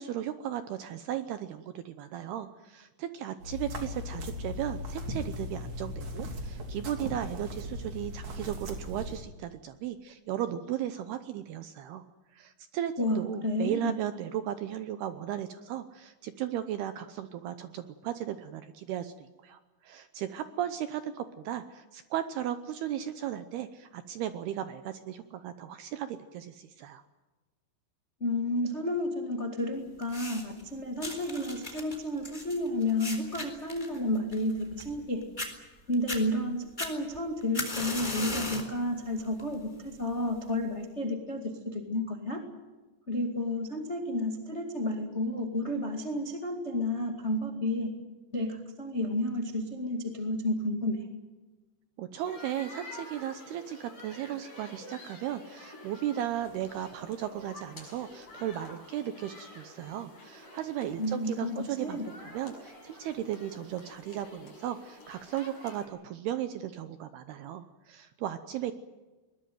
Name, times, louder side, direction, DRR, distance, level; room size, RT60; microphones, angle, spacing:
voice 1, 0.0-12.0 12.3-27.0 52.0-68.7, right 11 dB, 80° right, 10 dB, 2.3 m, -36 dB
sound 1, 3.4-9.2, left 1 dB, 40° right, 3.3 m, -38 dB
voice 2, 13.0-13.9 28.2-35.2 35.9-42.4 43.1-47.9 48.3-51.0 61.0-62.1, left 1 dB, 85° left, 3 dB, 0.6 m, -31 dB
sound 2, 30.0-30.6 31.0-35.0 35.4-35.5 35.9-36.2 36.8-38.8 39.2-39.5 40.3-40.4, left 1 dB, 10° left, 3.1 m, -37 dB
sound 3, 52.2-65.9, left 2 dB, 30° left, 7.1 m, -49 dB
22.0 x 20.5 x 9.3 m, 1.2 s
omnidirectional pair, 5.6 m